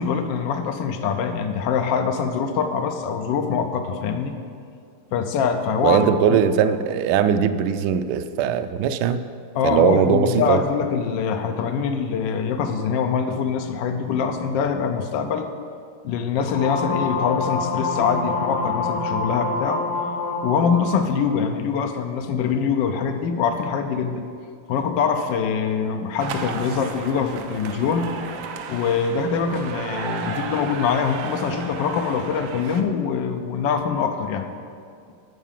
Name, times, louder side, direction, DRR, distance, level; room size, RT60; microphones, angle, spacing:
voice 1, 0.0-4.4 5.1-6.1 9.5-15.5 16.0-19.8 20.4-24.2 24.7-28.1 28.7-34.5, left 6 dB, 65° left, 5 dB, 1.3 m, -24 dB
voice 2, 5.8-9.2 9.6-10.6, right 8 dB, 90° right, 9 dB, 0.9 m, -20 dB
sound 1, 16.5-21.0, left 3 dB, 80° left, 1.8 m, -26 dB
sound 2, 26.2-32.8, right 6 dB, 70° right, 1.3 m, -34 dB
12.0 x 4.6 x 7.5 m, 2.3 s
omnidirectional pair, 2.4 m